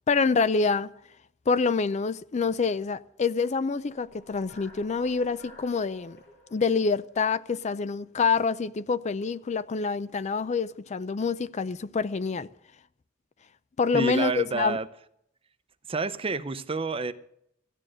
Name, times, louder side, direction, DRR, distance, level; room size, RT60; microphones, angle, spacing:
voice 1, 0.1-0.9 1.5-6.2 6.5-12.5 13.8-14.8, left 5 dB, 35° left, 0.4 m, -26 dB
sound 1, 3.8-8.0, left 1 dB, 55° left, 6.5 m, -53 dB
voice 2, 13.9-14.9 15.9-17.1, right 4 dB, 30° right, 0.6 m, -29 dB
14.5 x 10.0 x 6.3 m
head